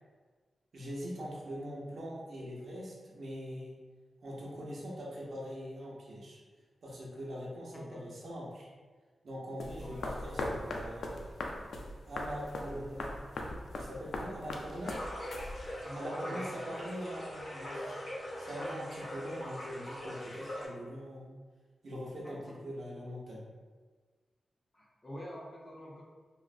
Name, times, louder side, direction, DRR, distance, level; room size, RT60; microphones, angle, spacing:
voice 1, 0.7-3.8 4.2-6.4 6.8-8.7 9.2-11.2 12.1-13.1 13.7-15.0 15.9-18.0 18.4-21.3 21.8-23.4, equal, 60° right, -5 dB, 0.7 m, -42 dB
voice 2, 7.7-8.0 9.8-10.1 15.8-16.6 22.2-22.6 24.7-26.0, equal, 20° left, -4 dB, 0.5 m, -46 dB
sound 1, 9.6-15.9, left 2 dB, 85° left, 0.3 m, -40 dB
sound 2, 14.8-20.6, equal, 65° left, 0.8 m, -41 dB
3.8 x 2.0 x 2.4 m, 1.4 s
wide cardioid pair, 150°, 0 cm